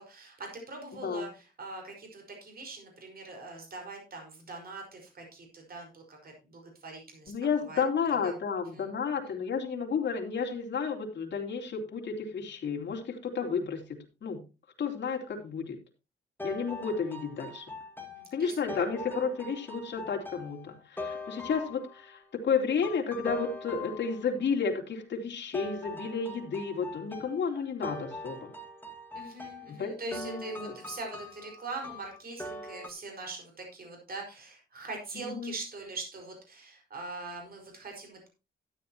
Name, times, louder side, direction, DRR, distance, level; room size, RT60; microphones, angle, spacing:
voice 1, 0.0-7.3 7.6-7.8 8.1-8.3 8.7-8.9 9.3-9.4 18.0-18.6 29.1-38.3, right 3 dB, 50° right, 2 dB, 5.2 m, -42 dB
voice 2, 7.3-14.4 14.8-15.8 16.4-17.7 18.3-28.5 29.7-30.7 35.1-35.5, left 5 dB, 65° left, 0 dB, 3.2 m, -32 dB
sound 1, 16.4-22.2 22.8-24.5 25.5-32.9, left 2 dB, 10° left, 2.1 m, -42 dB
13.0 x 10.5 x 3.0 m, 0.30 s
cardioid pair, 120°, 20 cm